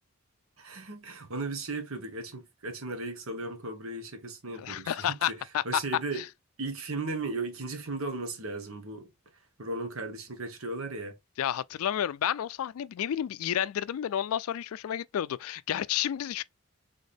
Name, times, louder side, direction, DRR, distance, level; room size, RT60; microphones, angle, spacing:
voice 1, 0.6-5.3 5.6-6.2 6.6-9.1 9.6-11.2, right 3 dB, 70° right, 1.2 m, -36 dB
voice 2, 4.6-5.8 6.2-6.3 11.4-16.4, left 10 dB, 75° left, 0.3 m, -31 dB
4.1 x 3.5 x 3.4 m
head